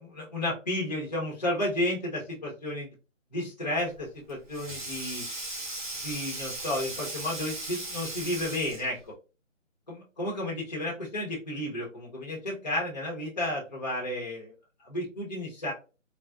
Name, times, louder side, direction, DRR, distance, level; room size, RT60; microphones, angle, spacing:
voice 1, 0.0-2.9 3.3-5.2 6.0-9.0 9.9-14.5 14.8-15.7, left 1 dB, 35° left, -4 dB, 0.7 m, -32 dB
Sink (filling or washing), 3.9-9.0, right 2 dB, 40° right, 0.9 m, -37 dB
3.4 x 2.0 x 2.2 m, 0.31 s
figure-of-eight pair, 170°, 39 cm